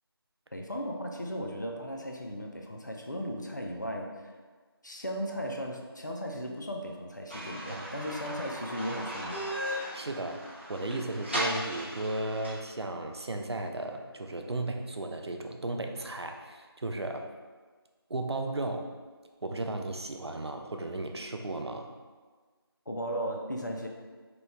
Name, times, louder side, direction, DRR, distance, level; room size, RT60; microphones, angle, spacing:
voice 1, 0.5-4.3 4.8-9.4 22.9-23.9, equal, 45° left, 1 dB, 0.4 m, -36 dB
sound 1, 7.3-12.5, equal, 30° right, 0.5 m, -37 dB
voice 2, 9.7-17.3 18.1-18.9 19.4-21.9, right 2 dB, 90° right, 4 dB, 0.4 m, -35 dB
2.9 x 2.1 x 3.4 m, 1.4 s
figure-of-eight pair, 170°, 13 cm